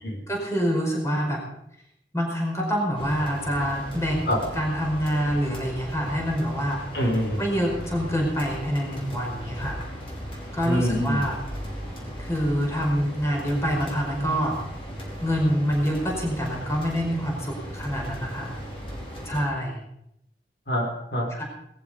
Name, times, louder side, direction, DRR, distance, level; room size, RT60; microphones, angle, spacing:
voice 1, 0.3-1.4 2.1-4.3 4.6-6.8 7.4-9.8 10.5-11.4 12.2-14.6 15.2-18.5 19.3-19.8 21.3-21.4, equal, 15° left, -1 dB, 5.1 m, -26 dB
sound 1, 2.9-19.5, equal, 30° left, 4.8 m, -37 dB
voice 2, 6.9-7.4 10.6-11.3 20.7-21.3, equal, 65° left, 0 dB, 4.4 m, -25 dB
19.5 x 14.0 x 5.2 m, 0.77 s
head